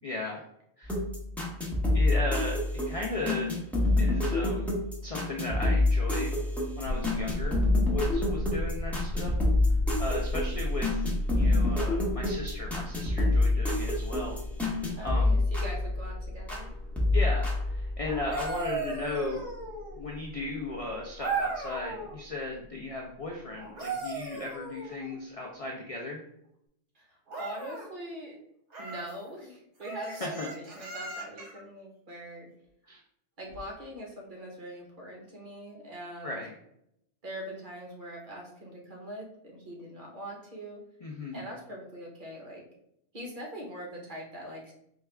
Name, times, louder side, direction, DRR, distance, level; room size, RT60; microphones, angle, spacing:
voice 1, 0.0-0.4 0.8-1.0 1.9-2.6 2.9-3.5 4.0-6.4 6.7-7.6 7.9-9.3 9.7-11.1 11.4-14.4 14.6-15.4 17.1-19.5 19.9-26.2 30.2-30.5 32.9-33.0 36.2-36.5 41.0-41.4, left 2 dB, 50° left, -1 dB, 0.4 m, -36 dB
sound 1, 0.8-16.7 17.0-18.5, left 2 dB, ahead, 0.8 m, -27 dB
sound 2, 6.8-23.7, left 1 dB, 75° left, 1.0 m, -37 dB
voice 2, 6.9-7.3 14.9-16.7 26.9-28.4 28.8-32.5 33.4-36.4 37.2-40.8 41.3-42.6 43.1-44.7, equal, 45° right, -1 dB, 1.1 m, -42 dB
sound 3, 18.1-20.1 21.2-22.2 23.6-25.2 27.3-27.9 28.7-29.1 29.8-31.6 33.5-33.7, right 4 dB, 70° right, 1.2 m, -36 dB
4.6 x 2.4 x 3.3 m, 0.76 s
omnidirectional pair, 1.2 m